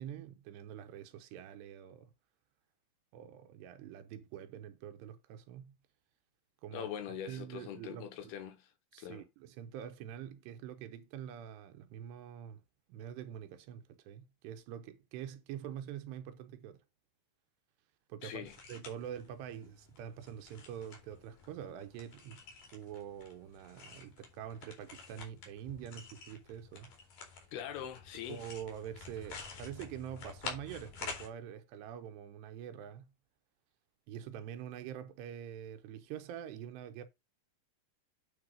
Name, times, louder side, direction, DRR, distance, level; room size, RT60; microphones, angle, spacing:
voice 1, 0.0-2.1 3.1-5.8 6.6-6.9 7.3-8.3 8.9-12.6 12.9-16.8 18.1-22.4 22.7-26.9 28.3-33.1 34.1-37.0, right 9 dB, 80° right, 2.9 m, -45 dB
voice 2, 6.7-8.7 9.0-9.2 18.2-18.5 27.5-28.4, left 9 dB, 80° left, 2.5 m, -42 dB
sound 1, 18.5-31.3, left 5 dB, 55° left, 4.0 m, -49 dB
9.6 x 4.3 x 5.0 m
omnidirectional pair, 5.0 m